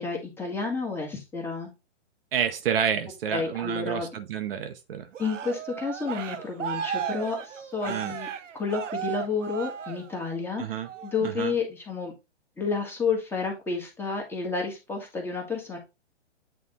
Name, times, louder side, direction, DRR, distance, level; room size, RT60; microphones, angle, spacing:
voice 1, 0.0-1.7 3.3-4.1 5.2-8.3 8.5-12.1 12.6-15.8, left 4 dB, 5° left, 1.5 m, -30 dB
voice 2, 2.3-5.1 7.9-8.1 10.6-10.9 11.2-11.5, right 8 dB, 50° right, 1.0 m, -29 dB
Cheering, 5.1-10.4 10.8-11.2, right 8 dB, 80° right, 0.9 m, -35 dB
8.5 x 3.5 x 3.7 m
hypercardioid pair, 140°, 36 cm